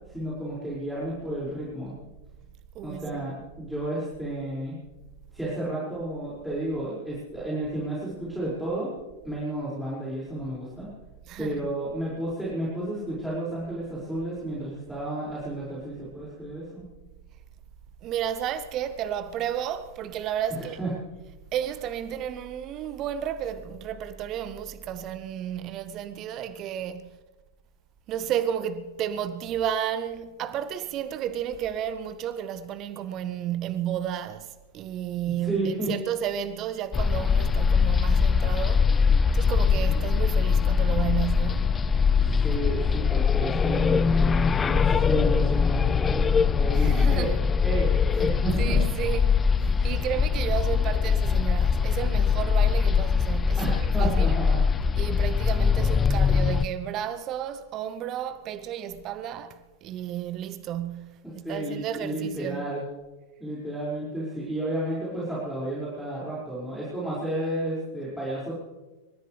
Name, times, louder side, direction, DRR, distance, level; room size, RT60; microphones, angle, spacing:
voice 1, 0.1-1.9 2.8-4.8 5.3-8.9 9.2-10.9 11.4-16.8 20.6-20.9 35.4-35.9 42.4-47.3 47.6-47.9 48.2-48.8 49.7-50.0 53.6-54.6 61.2-62.8 63.4-68.5, right 1 dB, ahead, 5.6 m, -32 dB
voice 2, 2.7-3.5 11.3-11.7 18.0-20.8 21.5-27.1 28.1-38.9 39.3-41.8 46.7-47.5 48.1-48.3 48.6-54.4 55.0-62.7, right 10 dB, 35° right, 0.9 m, -32 dB
sound 1, 36.9-56.7, left 6 dB, 20° left, 0.4 m, -22 dB
28.0 x 14.0 x 3.4 m
figure-of-eight pair, 90°, 0 cm